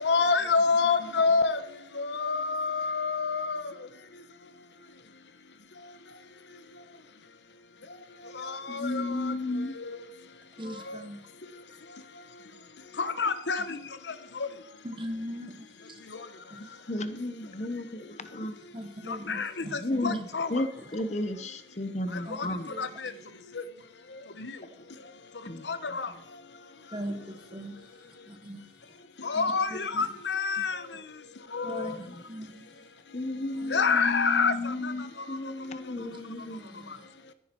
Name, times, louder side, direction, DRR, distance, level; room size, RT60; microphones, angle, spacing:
voice 1, 0.0-1.6 2.0-3.6 8.4-9.3 9.8-10.0 10.9-11.0 13.0-13.8 14.4-14.5 19.3-20.6 22.8-22.9 24.4-24.5 25.7-26.1 29.2-30.8 31.5-32.0 33.7-34.9, left 4 dB, 85° left, 1.0 m, -27 dB
voice 2, 8.7-9.7 16.9-18.6 19.8-20.2 20.5-22.7 25.4-25.7 31.9-32.1 33.1-36.6, left 2 dB, 40° left, 0.9 m, -33 dB
voice 3, 10.6-11.3 14.8-16.0 16.5-16.6 18.7-20.2 20.8-20.9 22.2-22.9 26.9-27.8 28.3-28.7 29.3-30.1 31.6-32.8 33.5-33.8 36.0-37.0, equal, 30° right, 1.3 m, -40 dB
14.0 x 10.5 x 4.5 m
head